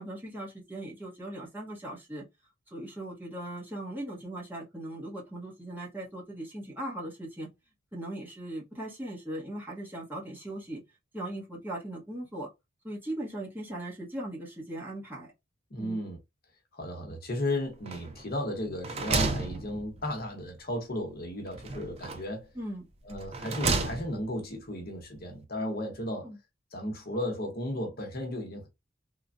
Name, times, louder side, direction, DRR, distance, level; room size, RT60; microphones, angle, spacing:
voice 1, 0.0-2.2 2.7-7.5 7.9-10.8 11.1-12.5 12.8-15.3 15.8-16.1 22.5-22.8 26.2-26.4, right 1 dB, 10° right, 1.0 m, -39 dB
voice 2, 15.7-16.2 16.7-22.5 23.0-26.3 26.7-28.7, left 1 dB, 50° left, 0.9 m, -34 dB
sound 1, 17.9-18.4 18.7-20.3 21.5-22.4 23.1-24.3, right 3 dB, 30° right, 0.4 m, -32 dB
3.2 x 2.2 x 2.5 m
head